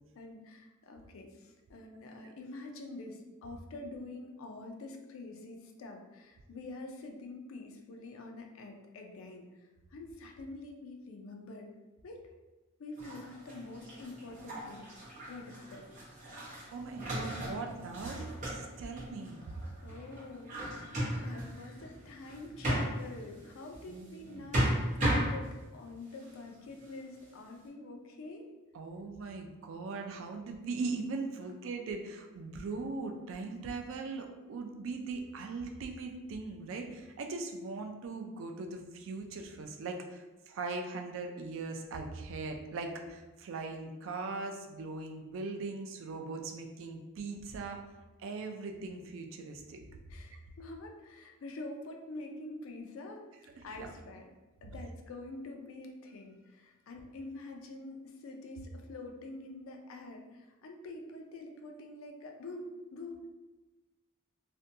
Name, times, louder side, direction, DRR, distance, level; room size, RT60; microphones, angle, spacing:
voice 1, 0.1-11.7 12.0-12.3 12.8-14.9 15.3-15.9 19.8-24.7 24.9-28.5 50.1-53.2 53.6-54.3 54.6-63.3, left 2 dB, 70° left, 3 dB, 0.4 m, -46 dB
sound 1, 13.0-23.9 24.2-25.7 26.2-26.9, equal, 35° right, 0.7 m, -36 dB
voice 2, 16.7-19.4 23.9-24.5 28.7-47.8 48.2-49.8 53.6-53.9, right 3 dB, 65° right, 4 dB, 0.3 m, -40 dB
2.5 x 2.1 x 2.6 m, 1.2 s
head